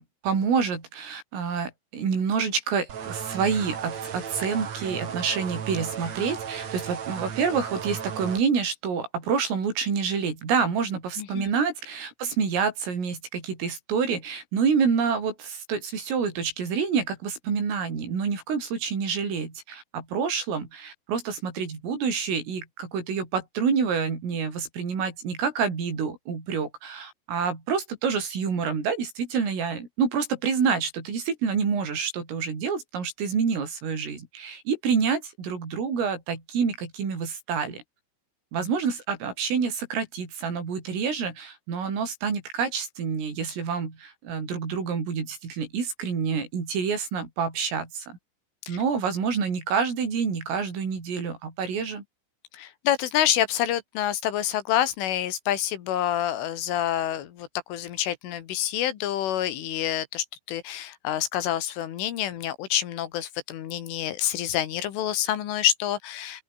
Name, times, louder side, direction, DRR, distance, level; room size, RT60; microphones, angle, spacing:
voice 1, 0.0-37.8 38.5-48.2 48.7-52.0, right 6 dB, 85° right, 9.1 m, -28 dB
sound 1, 2.9-8.4, right 7 dB, 45° right, 2.7 m, -35 dB
voice 2, 11.2-11.5 48.7-48.8 52.5-66.4, left 11 dB, 75° left, 4.6 m, -27 dB
open air
omnidirectional pair, 5.7 m